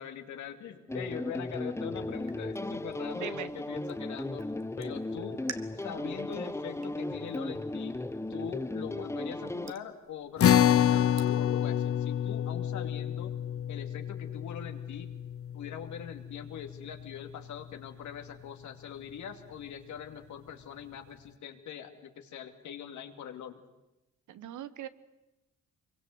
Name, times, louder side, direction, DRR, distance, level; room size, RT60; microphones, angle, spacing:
voice 1, 0.0-4.4 4.8-5.4 5.7-8.0 8.3-10.6 10.9-13.3 13.7-15.1 15.5-23.6, left 8 dB, 75° left, 6 dB, 2.5 m, -42 dB
sound 1, 0.9-9.7, left 2 dB, 10° left, 0.9 m, -36 dB
sound 2, 1.9-11.9, right 8 dB, 60° right, 1.8 m, -53 dB
voice 2, 3.1-3.5 24.3-24.9, right 11 dB, 75° right, 14 dB, 1.3 m, -40 dB
sound 3, 10.4-17.0, left 10 dB, 50° left, 0.8 m, -28 dB
25.0 x 23.5 x 8.0 m, 0.98 s
cardioid pair, 90°, 30 cm